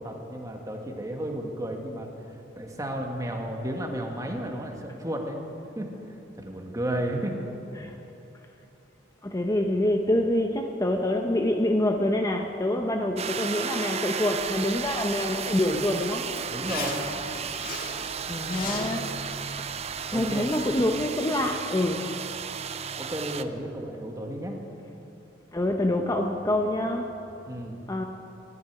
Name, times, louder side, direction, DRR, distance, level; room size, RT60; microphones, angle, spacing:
voice 1, 0.0-2.1 2.6-5.9 6.4-7.4 16.5-17.0 20.1-20.5 23.0-24.6 27.5-27.8, right 1 dB, 20° right, 1 dB, 1.6 m, -33 dB
voice 2, 9.2-16.4 18.3-19.1 19.6-19.7 20.1-22.2 25.5-27.1 27.9-28.0, left 1 dB, 20° left, 4 dB, 0.7 m, -26 dB
sound 1, 13.2-23.4, right 7 dB, 35° right, 0.5 m, -34 dB
Zipper (clothing), 14.3-21.0, left 3 dB, 50° left, 1.8 m, -41 dB
14.0 x 9.5 x 9.3 m, 2.8 s
head